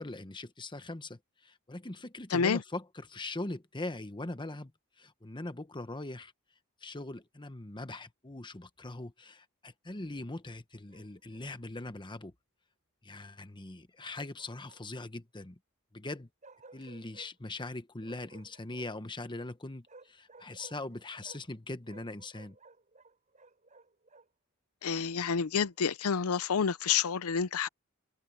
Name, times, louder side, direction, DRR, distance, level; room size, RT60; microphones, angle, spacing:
voice 1, 0.0-4.7 5.0-6.3 6.8-12.3 13.0-15.6 15.9-16.3 16.7-22.6, left 2 dB, 20° left, 1.1 m, -41 dB
Bark, 10.9-11.5 14.0-15.1 16.4-17.3 18.0-19.1 19.9-21.6 21.8-24.3 24.9-25.9, right 3 dB, 35° right, 7.8 m, -58 dB
voice 2, 24.8-27.7, left 6 dB, 90° left, 0.6 m, -29 dB
open air
head